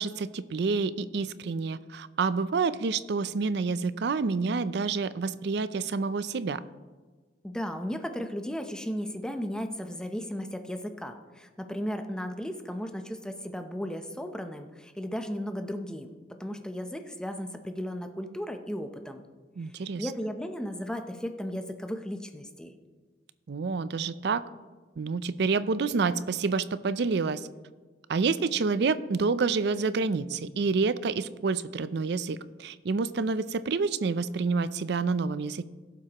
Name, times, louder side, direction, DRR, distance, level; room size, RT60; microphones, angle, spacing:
voice 1, 0.0-6.6 19.6-20.1 23.5-24.4 25.0-27.5 28.1-35.6, right 4 dB, 70° right, 15 dB, 0.5 m, -28 dB
voice 2, 7.4-16.1 16.4-19.3 20.0-22.7, equal, 5° left, 6 dB, 0.6 m, -35 dB
17.5 x 7.6 x 3.0 m, 1.3 s
head